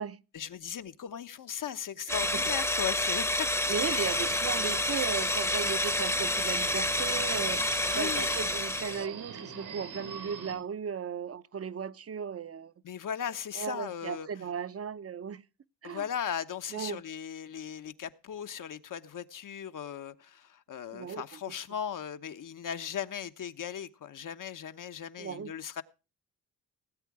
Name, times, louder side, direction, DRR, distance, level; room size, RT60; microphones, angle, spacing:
voice 1, 0.3-3.5 3.9-4.2 7.8-8.3 12.8-14.3 15.8-25.8, left 8 dB, 55° left, 1.0 m, -38 dB
sound 1, 2.1-9.1, left 1 dB, 5° left, 0.9 m, -29 dB
voice 2, 3.7-7.6 7.9-12.7 13.5-15.4 15.8-16.1 16.7-17.0 20.9-21.4 25.2-25.5, right 7 dB, 40° right, 0.8 m, -36 dB
Subway metro underground, 3.7-10.5, right 6 dB, 90° right, 3.7 m, -44 dB
18.0 x 8.3 x 4.8 m
cardioid pair, 70°, 37 cm